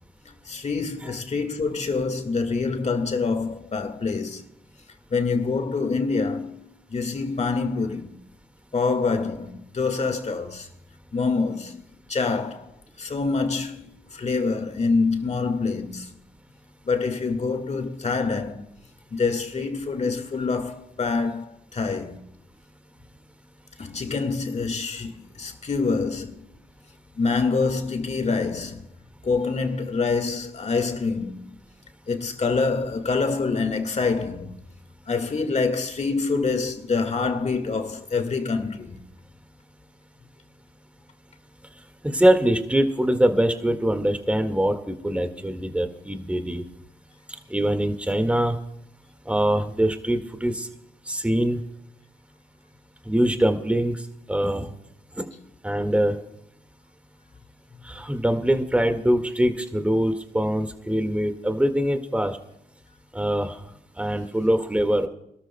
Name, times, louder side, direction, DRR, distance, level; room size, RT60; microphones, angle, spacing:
voice 1, 0.3-4.4 5.1-6.6 6.9-8.2 8.7-10.7 11.1-12.7 13.0-13.8 14.1-16.1 16.9-18.7 19.1-22.2 23.8-26.4 27.2-28.9 29.2-31.6 32.1-34.6 35.1-38.9, left 4 dB, 45° left, 1.8 m, -26 dB
voice 2, 42.0-46.6 47.5-48.6 49.3-50.7 51.1-51.6 53.1-54.0 54.3-54.7 55.2-55.3 55.6-56.2 57.8-62.4 63.1-63.6 64.0-65.1, right 1 dB, 10° right, 1.8 m, -23 dB
27.5 x 13.0 x 2.2 m
supercardioid pair, 50°, 16 cm